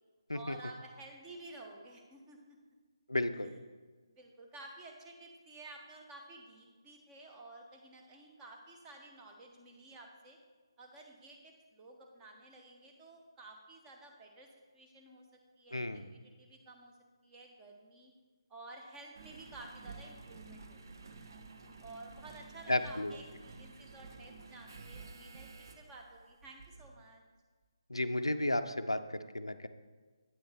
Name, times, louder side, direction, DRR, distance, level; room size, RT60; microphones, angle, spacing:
voice 1, 0.3-2.6 3.4-3.6 4.1-10.4 10.8-14.5 14.7-16.9 17.2-18.1 18.5-20.8 21.8-27.2, right 2 dB, 15° right, 1 dB, 0.9 m, -53 dB
voice 2, 3.1-3.5 15.7-16.1 22.7-23.1 27.9-29.7, left 1 dB, 90° left, 10 dB, 0.5 m, -33 dB
Engine, 19.1-27.0 27.6-27.7, right 4 dB, 50° right, 0.7 m, -52 dB
8.7 x 5.7 x 4.2 m, 1.4 s
figure-of-eight pair, 150°, 3 cm